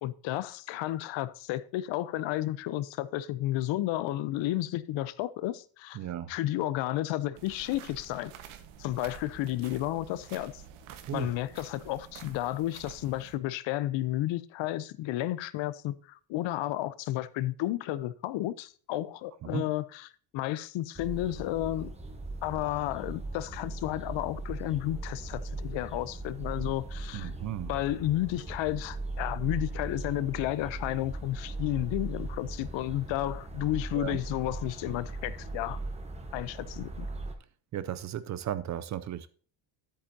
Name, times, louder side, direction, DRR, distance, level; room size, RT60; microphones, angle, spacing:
voice 1, 0.0-6.0 6.3-8.3 8.8-10.6 11.1-21.9 22.4-27.3 27.7-35.8 36.3-37.1, left 15 dB, 70° left, 16 dB, 0.8 m, -32 dB
voice 2, 6.0-6.3 11.0-11.3 19.5-19.6 27.1-27.7 33.9-34.2 37.7-39.3, right 11 dB, 40° right, 15 dB, 0.4 m, -35 dB
sound 1, 7.3-13.4, right 8 dB, 85° right, 1.4 m, -49 dB
sound 2, 20.9-37.3, right 2 dB, 15° right, 1.0 m, -39 dB
10.5 x 8.5 x 2.7 m, 0.43 s
cardioid pair, 175°, 47 cm